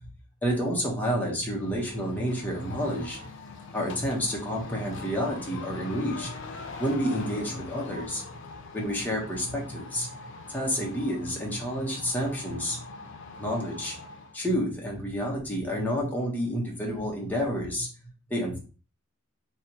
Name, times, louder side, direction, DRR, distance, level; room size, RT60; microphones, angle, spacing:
voice 1, 0.4-3.2 3.7-6.3 6.8-8.2 8.7-10.1 10.5-12.8 13.4-13.9 14.3-17.9 18.3-18.6, equal, 10° left, -2 dB, 0.9 m, -29 dB
sound 1, 1.6-14.4, left 3 dB, 60° left, 0.6 m, -42 dB
3.2 x 2.8 x 2.8 m, 0.36 s
head